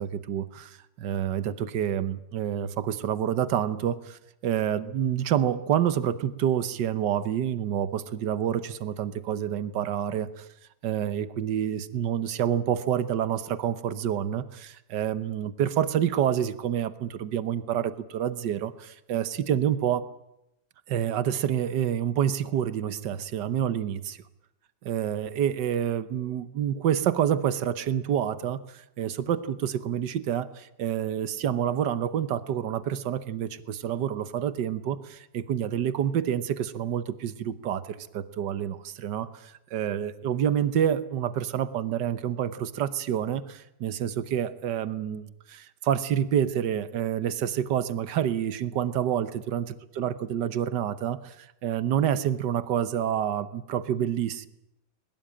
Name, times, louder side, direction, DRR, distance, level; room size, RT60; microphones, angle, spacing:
voice 1, 0.0-10.5 10.8-20.0 20.9-24.2 24.8-54.5, right 9 dB, 80° right, 14 dB, 1.7 m, -28 dB
21.5 x 20.5 x 8.9 m, 0.85 s
omnidirectional pair, 1.9 m